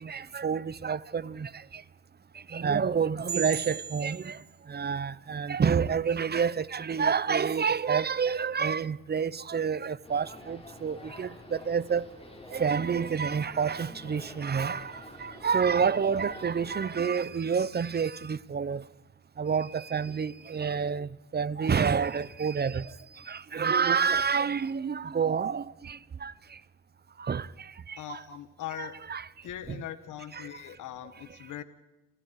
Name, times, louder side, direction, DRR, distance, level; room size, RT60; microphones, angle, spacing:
voice 1, 0.0-1.5 2.5-4.3 4.7-11.3 11.7-12.0 12.5-14.8 15.2-18.8 19.4-21.1 21.3-22.8 23.3-25.6 26.2-26.3 27.3-27.4 28.8-29.2, right 6 dB, 35° right, 0.9 m, -28 dB
sound 1, 10.0-17.0, left 2 dB, 20° left, 5.3 m, -48 dB
voice 2, 28.0-28.9 29.4-31.6, left 11 dB, 80° left, 1.7 m, -40 dB
29.0 x 27.5 x 4.9 m
cardioid pair, 90°, 30 cm